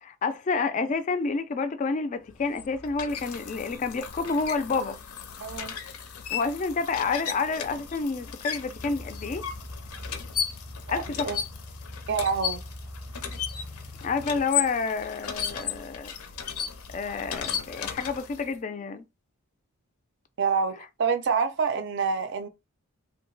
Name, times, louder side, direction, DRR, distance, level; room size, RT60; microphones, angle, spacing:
voice 1, 0.0-5.0 6.3-9.5 10.9-11.3 14.0-16.1 16.9-19.0, left 4 dB, 35° left, 0.3 m, -29 dB
sound 1, 2.3-18.5, left 8 dB, 85° left, 0.5 m, -35 dB
voice 2, 5.4-5.7 10.9-11.4 12.1-12.6 20.4-22.5, right 5 dB, 55° right, 0.4 m, -27 dB
sound 2, 8.7-14.4, left 1 dB, 10° right, 0.6 m, -42 dB
2.7 x 2.1 x 3.1 m
head